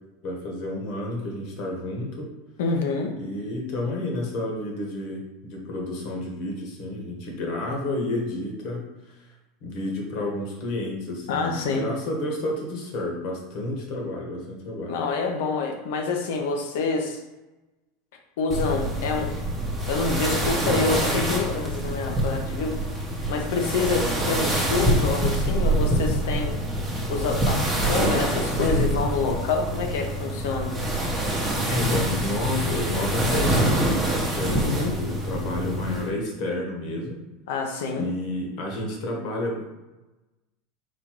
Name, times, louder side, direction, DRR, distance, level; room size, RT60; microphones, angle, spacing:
voice 1, 0.2-2.3 3.2-8.9 9.2-9.3 9.6-15.0 31.7-37.2 38.0-39.7, left 1 dB, 55° left, 0 dB, 1.3 m, -30 dB
voice 2, 2.6-3.1 11.3-11.9 14.9-17.2 18.4-19.3 19.8-22.8 23.3-26.6 27.1-30.8 34.6-34.9 37.5-38.1, left 4 dB, 75° left, 3 dB, 0.8 m, -27 dB
sound 1, 18.5-36.1, right 1 dB, 10° right, 1.0 m, -25 dB
4.3 x 2.6 x 4.6 m, 1.1 s
supercardioid pair, 145°, 0 cm